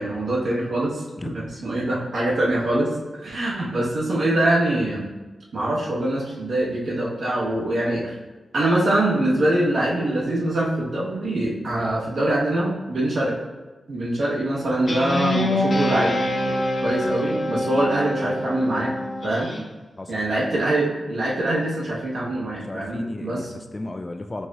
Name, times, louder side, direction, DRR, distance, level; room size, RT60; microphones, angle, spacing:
voice 1, 0.0-2.9 3.2-5.1 5.5-8.2 8.5-13.4 13.9-18.9 19.2-19.5 20.1-23.4, right 1 dB, 75° right, -5 dB, 1.3 m, -24 dB
Guitar, 14.9-19.6, left 1 dB, 55° left, 0.8 m, -25 dB
voice 2, 22.6-24.5, left 2 dB, 30° left, 6 dB, 0.3 m, -33 dB
4.6 x 2.4 x 4.0 m, 1.2 s
wide cardioid pair, 90°, 0 cm